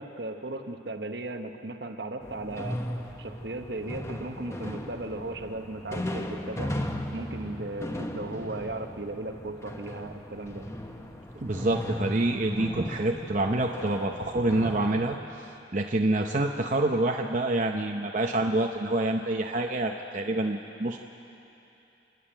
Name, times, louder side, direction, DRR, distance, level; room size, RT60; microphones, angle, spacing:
voice 1, 0.0-2.8 3.2-6.8 7.1-10.7, right 2 dB, 65° right, 6 dB, 1.1 m, -36 dB
sound 1, 2.2-15.2, left 1 dB, 15° left, 1.1 m, -37 dB
voice 2, 11.3-21.0, right 2 dB, 40° right, 2 dB, 0.7 m, -27 dB
28.0 x 11.0 x 8.9 m, 2.9 s
head